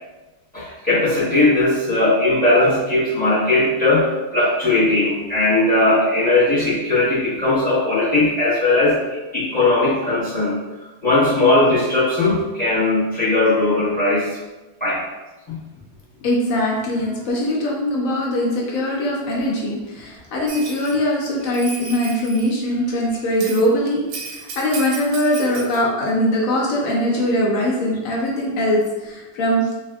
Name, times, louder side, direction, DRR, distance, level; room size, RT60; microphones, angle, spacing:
voice 1, 0.5-9.0 9.3-10.6 11.0-14.4 14.8-15.0 15.5-15.6, left 2 dB, 10° left, -10 dB, 0.5 m, -18 dB
voice 2, 16.2-29.7, equal, 65° left, -3 dB, 0.8 m, -21 dB
Bell, 20.5-20.9 21.4-22.5 23.4-23.7 24.1-25.8, right 4 dB, 85° right, 1.3 m, -34 dB
3.4 x 2.3 x 2.2 m, 1.1 s
omnidirectional pair, 2.0 m